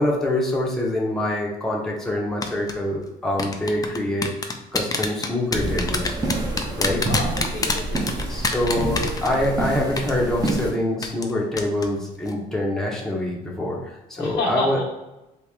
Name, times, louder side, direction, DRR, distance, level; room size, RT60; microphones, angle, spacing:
voice 1, 0.0-4.3 4.7-6.1 6.8-7.2 8.3-14.8, left 1 dB, 5° left, -3 dB, 0.8 m, -25 dB
sound 1, 2.4-2.7 3.4-9.7 10.0-10.1 10.5-10.6 11.0-11.3 11.6-11.9 12.2-12.3, left 4 dB, 20° left, 0.4 m, -25 dB
sound 2, 5.5-10.7, right 2 dB, 20° right, 0.8 m, -27 dB
voice 2, 7.0-8.5 14.2-14.7, left 2 dB, 85° left, -1 dB, 1.1 m, -30 dB
3.0 x 2.9 x 3.5 m, 0.97 s
cardioid pair, 110°, 17 cm